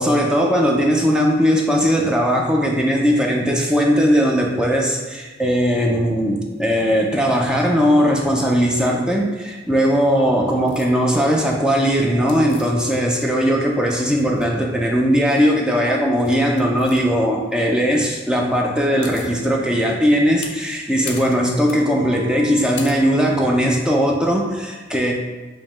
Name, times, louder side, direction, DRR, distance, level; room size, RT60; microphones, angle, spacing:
voice 1, 0.0-25.1, equal, 5° right, -1 dB, 0.3 m, -18 dB
sound 1, 10.7-10.9 12.3-13.4 13.7-14.6 15.2-15.5 16.2-17.0 18.5-18.6 18.8-19.4 19.8-23.6, left 3 dB, 70° left, 0.5 m, -38 dB
5.1 x 2.1 x 3.0 m, 1.3 s
head